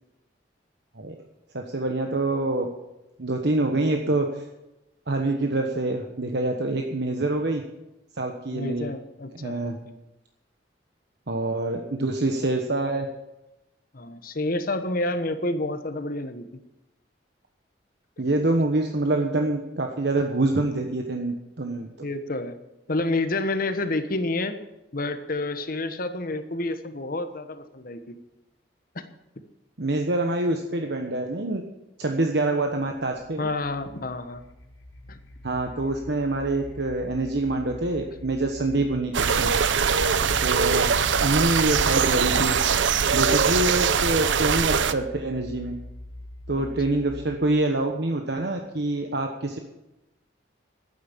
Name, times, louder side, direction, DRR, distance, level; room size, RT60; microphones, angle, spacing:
voice 1, 1.5-2.7 3.2-4.4 5.1-7.6 8.2-8.9 9.4-9.8 11.3-13.1 18.2-21.9 29.8-31.6 32.0-33.5 35.4-39.5 40.4-40.9 41.2-42.6 43.1-45.7 46.5-49.6, right 2 dB, 65° right, 3 dB, 1.2 m, -26 dB
voice 2, 8.5-9.9 13.9-16.5 22.0-22.6 22.9-24.6 24.9-28.2 28.9-29.1 33.4-34.5 35.1-35.2 40.5-40.8, left 2 dB, 50° left, 9 dB, 1.2 m, -29 dB
sound 1, 32.8-47.6, left 1 dB, 80° left, 2.0 m, -44 dB
sound 2, 39.1-44.9, right 6 dB, 85° right, 0.7 m, -22 dB
12.0 x 9.2 x 7.3 m, 0.97 s
head